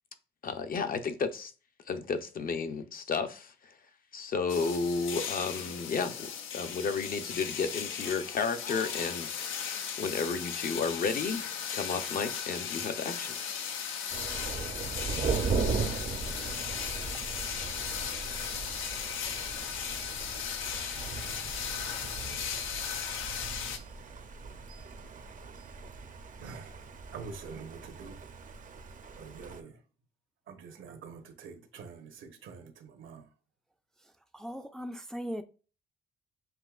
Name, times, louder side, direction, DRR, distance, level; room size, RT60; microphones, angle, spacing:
voice 1, 0.4-1.5 1.9-3.7 4.1-13.3, left 5 dB, 45° left, 0.7 m, -33 dB
sound 1, 4.5-23.8, left 7 dB, 90° left, 0.7 m, -37 dB
Thunder, 14.1-29.6, right 4 dB, 40° right, 0.6 m, -38 dB
voice 2, 26.4-28.2 29.2-29.8 30.5-33.3, right 5 dB, 75° right, 1.1 m, -46 dB
voice 3, 34.3-35.4, equal, 5° left, 0.4 m, -38 dB
7.5 x 2.8 x 2.4 m
cardioid pair, 90°, 20 cm